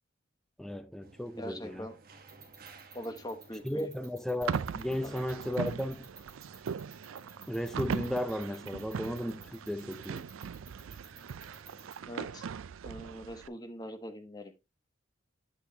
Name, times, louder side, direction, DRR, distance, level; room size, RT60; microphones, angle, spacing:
voice 1, 0.6-1.9 3.6-6.1 7.5-10.3, left 1 dB, ahead, 0.4 m, -35 dB
sound 1, 1.0-11.9, right 3 dB, 45° right, 1.0 m, -57 dB
voice 2, 1.4-2.0 2.9-3.9 5.0-5.2 12.1-12.4 12.8-14.5, equal, 20° left, 1.0 m, -42 dB
sound 2, 2.3-11.9, right 6 dB, 15° right, 2.3 m, -51 dB
sound 3, 4.4-13.5, right 6 dB, 85° right, 0.4 m, -39 dB
8.4 x 6.1 x 2.7 m
head